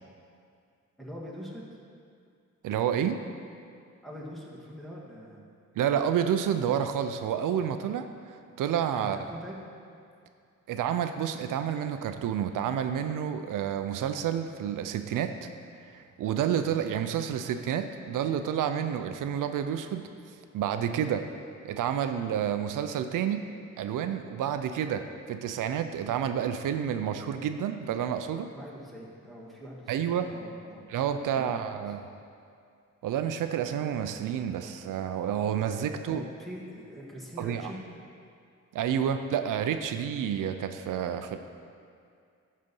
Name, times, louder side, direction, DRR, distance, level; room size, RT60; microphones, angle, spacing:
voice 1, 1.0-1.6 4.0-5.4 9.0-9.6 28.5-30.9 31.2-31.8 36.1-37.8, equal, ahead, -5 dB, 1.6 m, -43 dB
voice 2, 2.6-3.2 5.8-9.2 10.7-15.4 15.8-21.3 21.6-23.4 23.8-28.5 29.9-30.3 30.9-32.0 33.0-36.2 37.4-37.7 38.7-41.4, right 9 dB, 80° right, 8 dB, 0.5 m, -29 dB
11.5 x 4.2 x 5.3 m, 2.3 s
cardioid pair, 110°, 31 cm